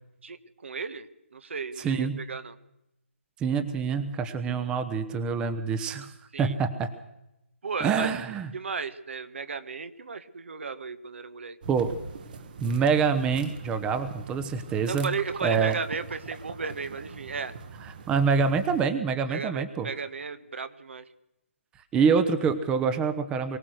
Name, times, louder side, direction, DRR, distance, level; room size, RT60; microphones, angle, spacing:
voice 1, 0.2-1.1 1.3-2.5 6.3-6.5 7.6-8.1 8.5-11.6 14.9-17.6 19.3-21.1, right 5 dB, 60° right, 11 dB, 1.6 m, -35 dB
voice 2, 1.8-2.2 3.4-6.1 6.4-6.9 7.8-8.5 11.7-11.9 12.6-15.1 15.4-15.7 17.8-19.9 21.9-23.6, right 5 dB, 10° right, 10 dB, 1.0 m, -26 dB
sound 1, 11.6-18.8, right 5 dB, 40° right, 1.6 m, -43 dB
23.0 x 17.5 x 6.5 m, 0.89 s
figure-of-eight pair, 150°, 7 cm